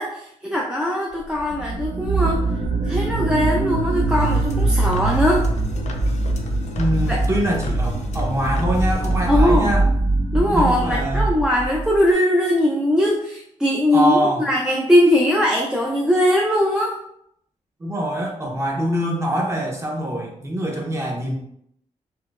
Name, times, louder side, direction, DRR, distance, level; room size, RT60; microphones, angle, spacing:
voice 1, 0.0-2.5 2.8-5.5 7.1-7.2 9.3-9.7 10.3-17.0, left 1 dB, 5° right, -3 dB, 0.4 m, -20 dB
sound 1, 1.4-12.0, right 2 dB, 70° right, 0.9 m, -22 dB
sound 2, 4.1-9.3, left 1 dB, 65° left, 0.5 m, -36 dB
voice 2, 6.7-9.8 10.5-11.2 13.9-14.4 17.8-21.3, equal, 20° right, -1 dB, 0.8 m, -24 dB
4.2 x 2.0 x 2.3 m, 0.72 s
cardioid pair, 115°, 13 cm